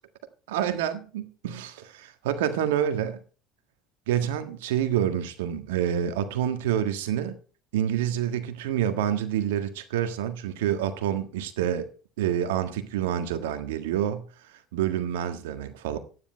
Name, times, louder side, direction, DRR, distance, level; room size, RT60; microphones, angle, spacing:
voice 1, 0.5-3.2 4.1-7.3 7.7-11.9 12.2-14.2 14.7-16.0, right 10 dB, 75° right, 1.6 m, -27 dB
12.0 x 9.9 x 4.5 m
hypercardioid pair, 65°, 0 cm